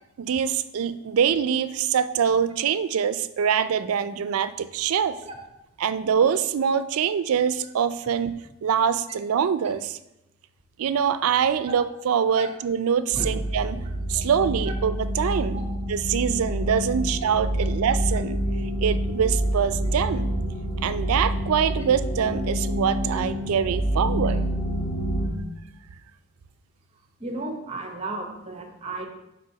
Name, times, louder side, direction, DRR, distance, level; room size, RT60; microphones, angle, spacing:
voice 1, 0.2-5.2 5.8-10.0 10.8-18.4 18.8-20.3 20.8-24.4, right 7 dB, 85° right, 13 dB, 0.4 m, -24 dB
sound 1, 13.1-25.3, equal, 25° left, 1.6 m, -27 dB
voice 2, 27.2-29.1, right 2 dB, 30° right, 3 dB, 0.9 m, -34 dB
4.8 x 4.5 x 5.7 m, 0.89 s
head